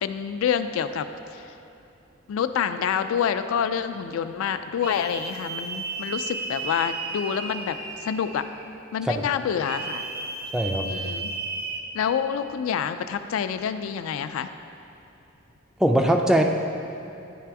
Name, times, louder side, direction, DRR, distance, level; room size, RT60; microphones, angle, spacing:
voice 1, 0.0-1.5 2.3-8.4 8.9-10.0 10.8-11.3 11.9-14.5, left 7 dB, 80° left, 10 dB, 0.3 m, -27 dB
sound 1, 4.8-8.7 9.6-11.8, right 3 dB, 50° right, 0.5 m, -34 dB
voice 2, 10.5-10.9 15.8-16.4, right 1 dB, 5° right, 3 dB, 0.3 m, -21 dB
10.0 x 3.4 x 4.6 m, 2.7 s
head